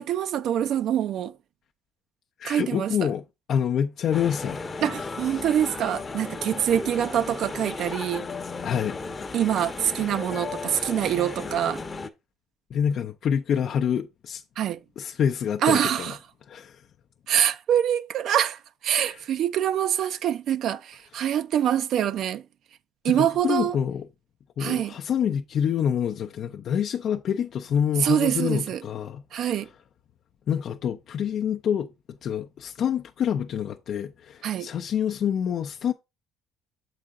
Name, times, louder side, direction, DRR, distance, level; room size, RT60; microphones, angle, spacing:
voice 1, 0.0-1.3 2.4-2.9 4.8-8.3 9.3-11.8 14.6-14.8 15.6-16.2 17.3-22.4 23.0-23.8 24.6-24.9 28.0-28.8 29.3-29.7 34.4-34.7, right 10 dB, 60° right, 0.4 m, -25 dB
voice 2, 2.4-3.2 3.5-4.6 8.6-9.0 12.7-14.4 15.0-16.1 16.5-16.8 19.0-19.2 23.1-24.1 24.6-29.5 30.5-35.9, left 8 dB, 55° left, 0.5 m, -27 dB
sound 1, 4.1-12.1, left 4 dB, 25° left, 0.8 m, -35 dB
7.5 x 4.8 x 3.7 m
cardioid pair, 110°, 0 cm